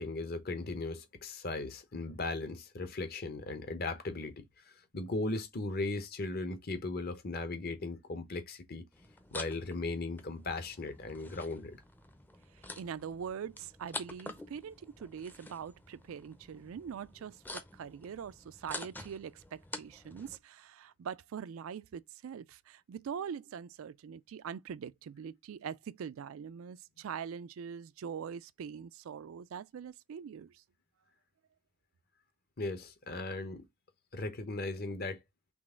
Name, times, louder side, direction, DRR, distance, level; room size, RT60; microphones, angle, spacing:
voice 1, 0.0-8.9 9.3-11.8 32.6-33.7 34.1-35.2, left 2 dB, 45° left, 0.8 m, -37 dB
sound 1, 8.9-20.4, left 2 dB, 10° left, 0.5 m, -48 dB
voice 2, 12.8-30.6, right 7 dB, 75° right, 0.3 m, -43 dB
3.9 x 3.2 x 3.6 m
head